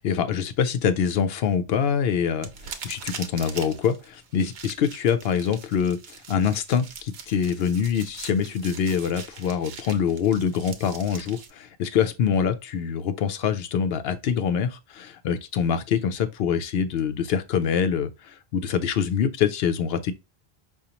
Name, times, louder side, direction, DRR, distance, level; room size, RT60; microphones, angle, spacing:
voice 1, 0.0-20.1, left 7 dB, 75° left, 0.8 m, -25 dB
sound 1, 2.4-11.5, right 6 dB, 85° right, 0.9 m, -42 dB
5.0 x 2.4 x 2.8 m
omnidirectional pair, 1.0 m